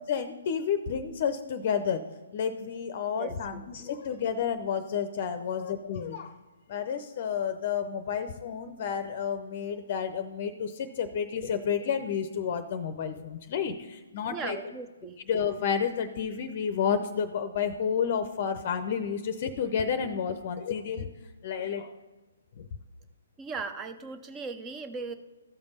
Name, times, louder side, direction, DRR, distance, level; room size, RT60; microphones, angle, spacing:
voice 1, 0.1-2.0 2.3-6.3 6.7-14.6 15.3-21.1 21.4-21.9 22.6-22.7, left 7 dB, 45° left, 10 dB, 0.6 m, -30 dB
voice 2, 3.1-3.9 14.3-15.2 23.4-25.1, right 4 dB, 20° right, 9 dB, 0.7 m, -38 dB
14.0 x 5.2 x 5.3 m, 1.2 s
figure-of-eight pair, 135°, 0 cm